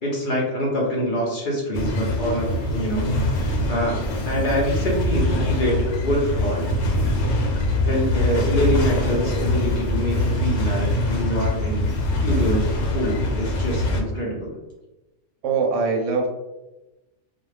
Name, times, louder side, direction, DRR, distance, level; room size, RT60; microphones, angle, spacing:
voice 1, 0.0-2.5 2.7-3.0 3.3-6.7 7.8-11.9 12.2-14.5, equal, 50° left, -3 dB, 0.7 m, -25 dB
sound 1, 1.7-14.0, left 1 dB, 90° left, 1.0 m, -23 dB
voice 2, 15.4-16.3, right 4 dB, 80° right, 2 dB, 0.9 m, -23 dB
2.4 x 2.2 x 3.1 m, 1.0 s
omnidirectional pair, 1.3 m